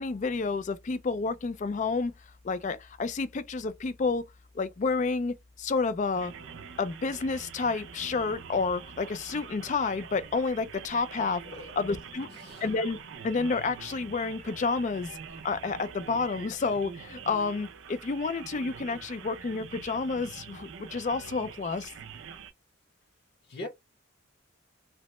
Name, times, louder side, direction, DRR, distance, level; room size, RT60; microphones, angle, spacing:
voice 1, 0.0-2.1 2.4-4.3 4.5-6.3 6.8-11.4 11.8-12.3 12.6-13.0 13.2-15.2 15.4-21.9, left 4 dB, 40° left, 0.3 m, -30 dB
sound 1, 6.1-22.5, right 7 dB, 70° right, 0.4 m, -45 dB
voice 2, 11.4-11.8 12.2-12.6 23.5-23.7, left 2 dB, 55° left, 0.8 m, -41 dB
2.9 x 2.1 x 3.0 m
head